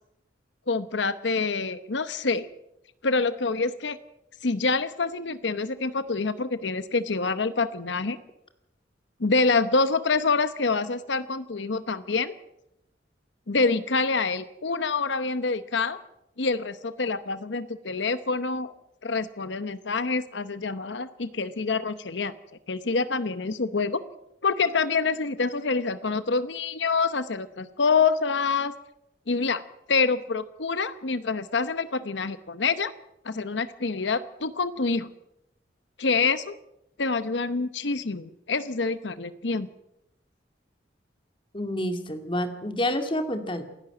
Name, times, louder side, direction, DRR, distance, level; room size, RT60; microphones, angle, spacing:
voice 1, 0.7-2.5 3.0-4.0 4.4-8.2 9.2-12.3 13.5-16.0 16.4-18.7 19.0-22.3 22.7-24.0 24.4-28.7 29.3-29.6 29.9-32.9 33.2-35.1 36.0-36.6 37.0-39.7, left 4 dB, 85° left, 13 dB, 0.9 m, -26 dB
voice 2, 41.5-43.6, left 1 dB, 30° left, 7 dB, 2.2 m, -28 dB
28.0 x 11.0 x 8.9 m, 0.85 s
head